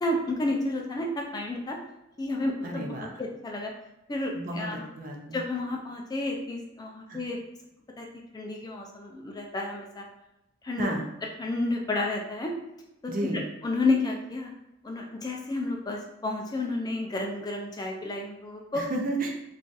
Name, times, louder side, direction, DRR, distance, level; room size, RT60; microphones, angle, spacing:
voice 1, 0.0-1.8 2.2-3.7 4.1-4.9 5.3-7.4 8.0-8.1 8.3-10.0 10.6-10.9 11.4-12.5 13.0-14.5 14.8-18.9, left 2 dB, 20° left, 0 dB, 0.3 m, -31 dB
voice 2, 2.6-3.2 4.3-5.4 7.1-7.2 10.8-11.0 13.1-13.4 18.7-19.3, right 2 dB, 45° right, 1 dB, 0.5 m, -32 dB
2.4 x 2.4 x 3.8 m, 0.89 s
head